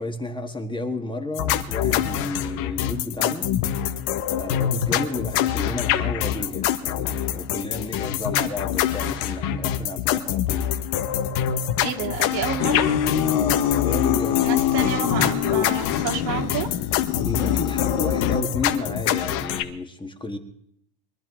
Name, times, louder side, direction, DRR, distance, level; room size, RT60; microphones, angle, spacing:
voice 1, 0.0-3.5 4.3-10.7 13.2-14.9 17.1-20.4, left 2 dB, 10° left, 1.6 m, -32 dB
sound 1, 1.4-19.6, left 10 dB, 65° left, 1.5 m, -25 dB
voice 2, 11.8-12.9 14.4-16.7, right 7 dB, 80° right, 2.9 m, -29 dB
sound 2, 12.6-18.4, left 10 dB, 40° left, 1.2 m, -25 dB
23.5 x 13.5 x 3.7 m
supercardioid pair, 135°, 48 cm